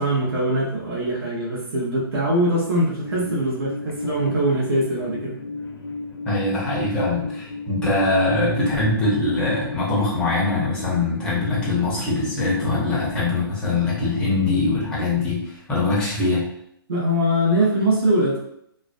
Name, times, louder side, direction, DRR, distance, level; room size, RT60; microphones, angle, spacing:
voice 1, 0.0-5.4 16.9-18.4, right 1 dB, 80° right, -4 dB, 0.7 m, -22 dB
sound 1, 3.0-15.1, left 2 dB, 85° left, 0.5 m, -35 dB
voice 2, 6.3-16.4, left 2 dB, 5° left, -5 dB, 0.5 m, -22 dB
2.4 x 2.1 x 2.4 m, 0.73 s
hypercardioid pair, 160°, 13 cm